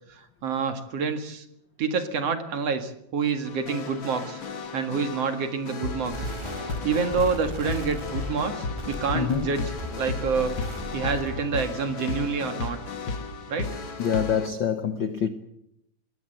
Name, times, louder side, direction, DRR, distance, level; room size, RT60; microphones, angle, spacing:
voice 1, 0.1-1.5 1.8-4.4 4.7-6.3 6.8-9.6 10.0-10.6 10.9-12.8 13.5-13.8, right 5 dB, 55° right, 2.8 m, -27 dB
sound 1, 3.4-14.5, left 4 dB, 45° left, 2.4 m, -34 dB
sound 2, 6.1-11.6, equal, 10° right, 3.2 m, -37 dB
voice 2, 9.1-9.5 14.0-15.3, left 7 dB, 60° left, 1.2 m, -26 dB
22.5 x 18.0 x 7.8 m
omnidirectional pair, 3.5 m